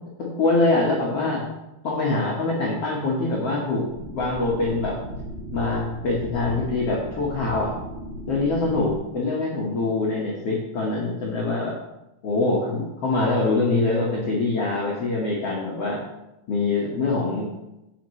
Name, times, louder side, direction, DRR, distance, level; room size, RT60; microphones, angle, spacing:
voice 1, 0.2-1.5 1.8-5.0 5.5-7.8 8.3-11.8 12.2-16.0 16.5-17.5, left 3 dB, 75° left, -4 dB, 1.4 m, -24 dB
sound 1, 3.9-9.0, equal, 50° right, 3.2 m, -36 dB
15.5 x 5.9 x 3.2 m, 0.95 s
omnidirectional pair, 5.0 m